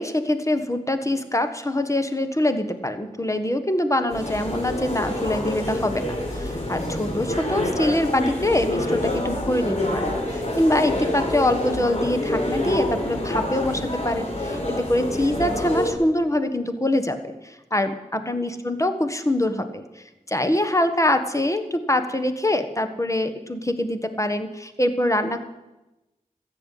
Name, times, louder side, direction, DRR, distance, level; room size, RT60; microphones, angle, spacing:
voice 1, 0.0-19.8 20.3-25.4, left 1 dB, 20° left, 8 dB, 1.5 m, -24 dB
sound 1, 4.1-15.9, left 1 dB, 50° left, 4.0 m, -27 dB
14.0 x 8.2 x 9.2 m, 1.0 s
wide cardioid pair, 50°, 14 cm